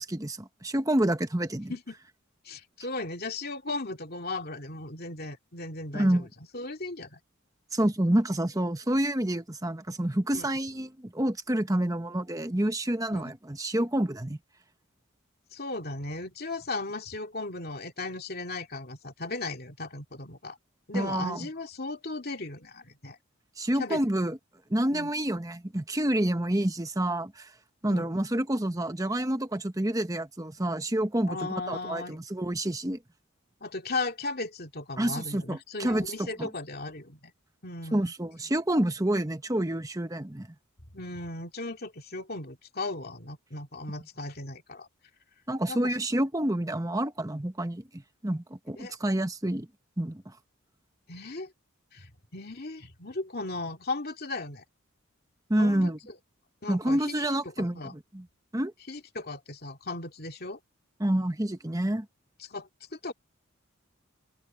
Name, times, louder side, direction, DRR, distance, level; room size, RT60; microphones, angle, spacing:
voice 1, 0.0-1.7 5.9-6.3 7.7-14.4 20.9-21.5 23.6-24.4 24.7-27.5 27.8-33.0 35.0-36.5 37.9-40.5 45.5-49.7 50.0-50.3 55.5-56.0 56.7-58.3 58.5-58.7 61.0-62.1, right 1 dB, 15° right, 1.1 m, -28 dB
voice 2, 2.4-6.3 6.5-7.2 10.3-10.5 13.1-13.3 15.5-20.6 20.9-23.2 23.8-24.0 24.9-25.1 27.9-28.1 31.3-32.2 33.6-37.3 37.6-38.1 40.9-44.9 45.7-45.9 48.8-48.9 51.1-51.5 51.9-54.6 55.6-55.9 56.6-57.0 57.6-57.9 58.9-60.6 62.4-63.1, left 2 dB, 45° left, 2.5 m, -36 dB
open air
head